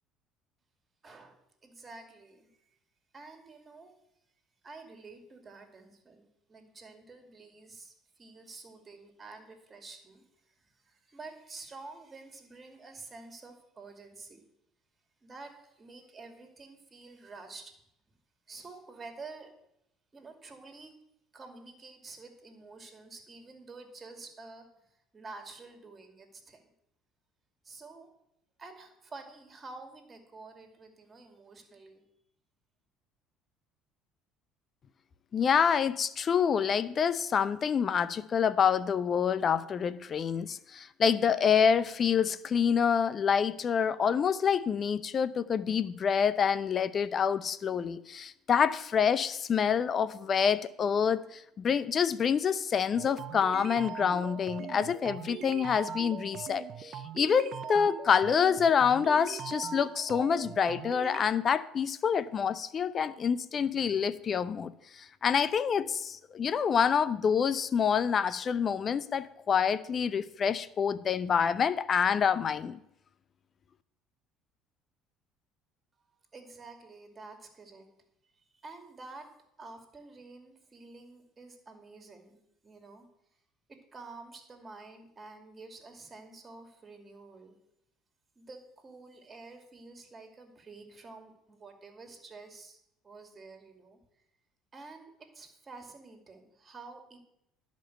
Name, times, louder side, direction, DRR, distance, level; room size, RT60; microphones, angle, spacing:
voice 1, 1.0-2.7 3.1-3.9 4.6-14.4 15.2-17.7 18.1-18.2 18.5-19.5 20.1-20.9 21.3-24.7 24.9-26.6 27.6-28.1 28.6-32.0 76.3-77.9 78.4-79.3 79.6-83.1 83.7-87.5 88.4-92.8 93.0-94.0 94.7-97.2, right 3 dB, 30° right, 5 dB, 2.5 m, -49 dB
voice 2, 35.3-72.8, left 7 dB, 45° left, 17 dB, 0.6 m, -27 dB
sound 1, 53.0-61.2, right 7 dB, 55° right, 0.6 m, -41 dB
11.5 x 5.3 x 7.9 m, 0.81 s
supercardioid pair, 75°, 0 cm